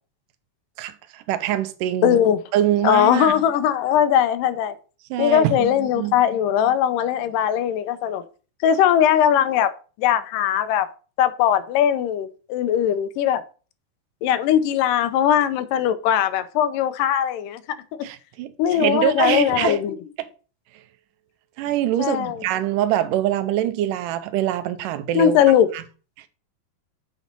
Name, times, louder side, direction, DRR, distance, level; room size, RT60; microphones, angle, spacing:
voice 1, 0.8-2.2 2.5-3.3 5.1-6.2 18.0-19.8 21.6-25.4 25.7-25.8, right 12 dB, 85° right, 2.3 m, -24 dB
voice 2, 2.0-2.4 2.8-4.8 5.2-8.2 8.6-10.9 11.2-13.4 14.2-17.6 17.9-18.1 18.6-20.0 22.0-22.4 25.1-25.7, left 10 dB, 90° left, 2.3 m, -20 dB
8.2 x 4.1 x 5.3 m
omnidirectional pair, 3.8 m